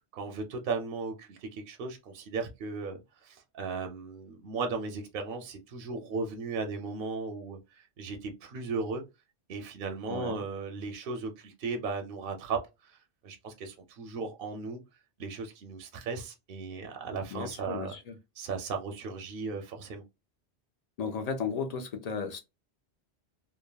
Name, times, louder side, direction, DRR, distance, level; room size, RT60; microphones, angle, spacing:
voice 1, 0.1-7.6 8.0-9.0 9.5-14.8 15.2-17.9 18.4-20.0, right 4 dB, 60° right, 0.7 m, -36 dB
voice 2, 10.1-10.4 17.3-18.1 21.0-22.4, left 5 dB, 55° left, 0.4 m, -35 dB
3.2 x 2.1 x 2.3 m
omnidirectional pair, 1.1 m